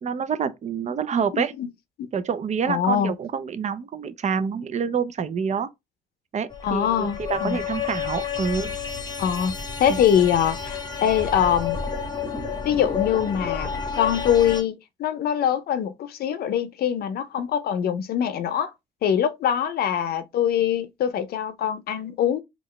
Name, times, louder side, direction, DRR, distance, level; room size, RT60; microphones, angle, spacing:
voice 1, 0.0-1.5 2.1-5.7 6.3-8.8 9.9-10.0, right 6 dB, 45° right, 0.6 m, -27 dB
voice 2, 1.3-1.7 2.0-2.1 2.7-3.1 6.6-7.6 9.2-9.5 9.8-11.8 12.6-13.7 14.0-18.7 19.0-22.4, left 9 dB, 70° left, 0.5 m, -23 dB
sound 1, 6.5-14.6, left 6 dB, 25° left, 0.9 m, -30 dB
3.7 x 2.4 x 3.1 m
supercardioid pair, 65°, 16 cm